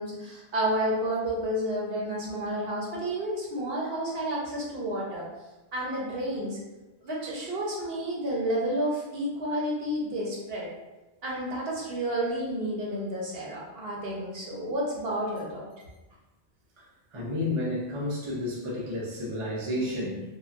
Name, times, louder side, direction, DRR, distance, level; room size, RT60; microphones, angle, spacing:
voice 1, 0.0-5.3 5.7-6.6 7.0-10.7 11.2-15.7, right 1 dB, 70° right, -4 dB, 0.9 m, -30 dB
voice 2, 17.1-20.2, left 1 dB, 35° right, -5 dB, 0.6 m, -31 dB
3.1 x 2.2 x 2.5 m, 1.1 s
omnidirectional pair, 1.1 m